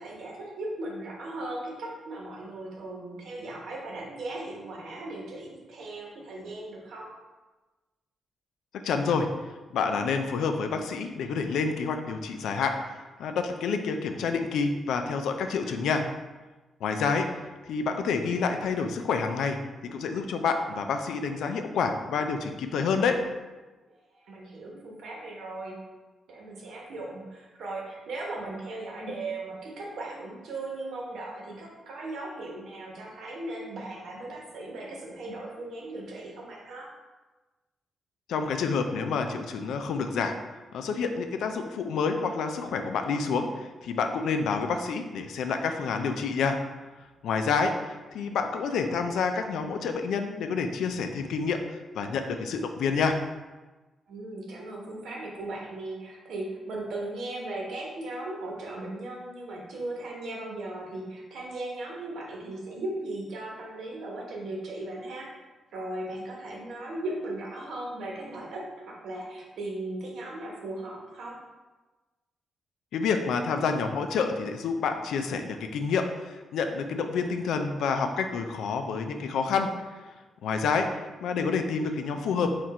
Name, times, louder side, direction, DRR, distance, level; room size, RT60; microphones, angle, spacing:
voice 1, 0.0-7.1 24.2-25.7 26.3-36.9 54.1-65.3 65.7-71.4, right 2 dB, 75° right, -2 dB, 1.0 m, -37 dB
voice 2, 8.7-9.3 9.7-16.1 16.8-17.3 17.7-23.2 38.3-40.3 40.7-46.6 47.2-53.2 72.9-79.7 80.4-82.6, left 5 dB, 85° left, 6 dB, 0.4 m, -28 dB
4.4 x 2.5 x 4.1 m, 1.2 s
cardioid pair, 125°, 0 cm